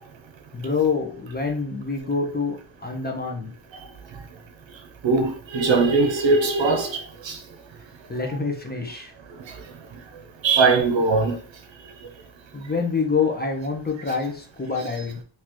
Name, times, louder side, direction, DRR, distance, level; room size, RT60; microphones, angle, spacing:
voice 1, 0.5-2.6 2.8-3.5 8.1-9.1 12.5-15.2, left 5 dB, 20° left, 0.9 m, -26 dB
voice 2, 5.0-7.4 10.4-11.4, right 3 dB, 65° right, 0.8 m, -20 dB
3.9 x 2.9 x 3.1 m
cardioid pair, 70°, 48 cm